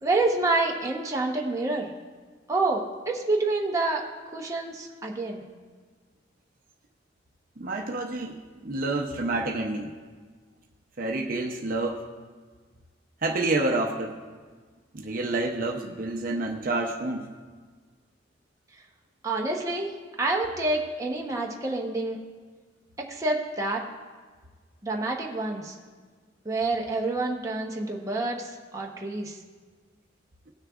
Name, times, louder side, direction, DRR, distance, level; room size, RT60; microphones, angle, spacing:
voice 1, 0.0-1.9 2.5-4.0 4.3-5.4 19.2-19.9 20.2-22.2 23.0-23.8 24.8-25.8 26.4-29.4, right 2 dB, 15° right, -1 dB, 0.9 m, -28 dB
voice 2, 7.6-9.9 11.0-12.0 13.2-14.2 14.9-17.3, right 2 dB, 50° right, 2 dB, 0.7 m, -28 dB
17.5 x 6.4 x 2.4 m, 1.5 s
head